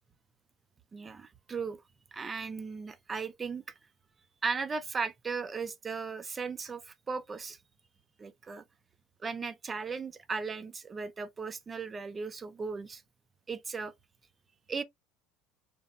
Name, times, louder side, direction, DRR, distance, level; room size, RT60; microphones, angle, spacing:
voice 1, 0.9-1.8 2.1-3.6 4.4-7.6 8.2-8.6 9.2-13.0 13.5-13.9 14.7-14.8, right 5 dB, 25° right, 0.5 m, -36 dB
2.9 x 2.2 x 2.2 m
supercardioid pair, 105°, 0 cm